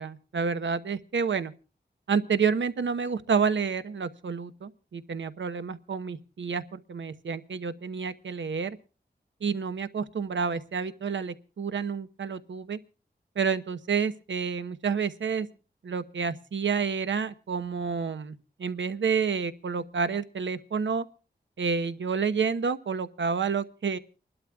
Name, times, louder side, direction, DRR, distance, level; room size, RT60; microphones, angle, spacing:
voice 1, 0.0-1.5 2.1-8.8 9.4-12.8 13.4-15.5 15.8-21.1 21.6-24.0, right 5 dB, 90° right, 1.0 m, -29 dB
30.0 x 12.0 x 2.3 m
wide cardioid pair, 115°, 19 cm